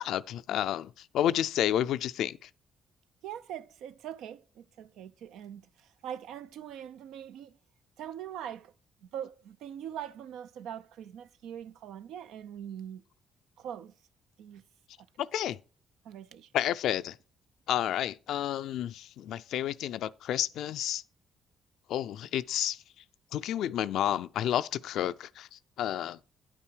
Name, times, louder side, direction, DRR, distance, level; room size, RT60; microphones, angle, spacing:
voice 1, 0.0-2.5 15.2-15.6 16.5-17.2 17.7-21.0 21.9-22.8 23.3-26.2, left 11 dB, 80° left, 0.4 m, -30 dB
voice 2, 3.2-7.6 8.0-8.7 9.0-13.0 13.6-13.9 14.4-14.6 15.0-15.1 16.0-16.5, right 9 dB, 85° right, 0.5 m, -42 dB
9.9 x 8.8 x 4.5 m
cardioid pair, 90°, 0 cm